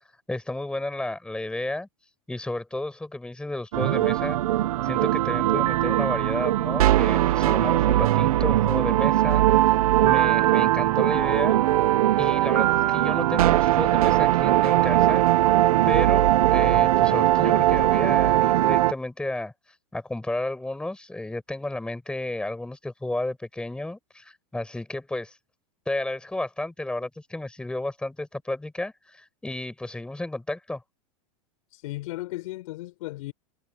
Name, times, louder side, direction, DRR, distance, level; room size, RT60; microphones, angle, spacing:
voice 1, 0.3-1.9 2.3-4.4 4.8-9.4 10.0-11.6 12.2-15.2 15.8-19.5 19.9-25.4 25.9-30.8, left 2 dB, 5° left, 7.3 m, -32 dB
sound 1, 3.7-18.9, right 14 dB, 75° right, 1.0 m, -20 dB
voice 2, 31.7-33.3, left 18 dB, 65° left, 4.6 m, -35 dB
supercardioid pair, 135°, 19 cm